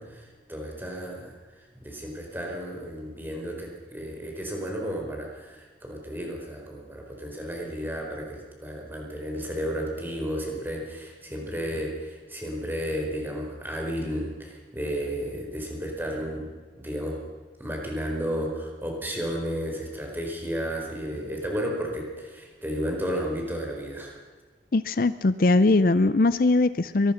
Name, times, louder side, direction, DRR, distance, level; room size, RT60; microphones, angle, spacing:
voice 1, 0.0-1.4 1.7-16.5 16.8-17.2 17.6-24.2, equal, 10° right, 1 dB, 4.5 m, -33 dB
voice 2, 24.7-27.1, left 2 dB, 50° left, 14 dB, 0.5 m, -21 dB
24.5 x 19.5 x 5.7 m, 1.4 s
head